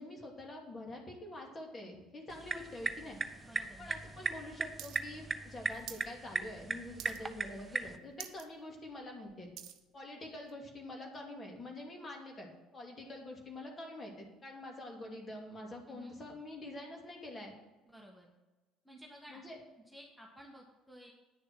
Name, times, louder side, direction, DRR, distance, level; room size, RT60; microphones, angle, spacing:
voice 1, 0.0-3.2 3.8-9.5 9.9-17.5 19.3-19.6, left 1 dB, 30° left, 1 dB, 2.6 m, -46 dB
sound 1, 2.3-8.0, right 3 dB, 20° right, 0.8 m, -38 dB
voice 2, 3.4-4.1 15.9-16.2 17.8-18.3 18.8-19.4 19.9-21.1, equal, 5° left, -1 dB, 1.7 m, -54 dB
sound 2, 4.8-5.0 5.3-6.1 6.4-6.7 7.0-7.4 7.8-7.9 8.1-8.5 8.9-9.8 10.5-10.6, right 11 dB, 60° right, 0.7 m, -47 dB
9.8 x 6.8 x 6.1 m, 1.2 s
figure-of-eight pair, 55°, 0 cm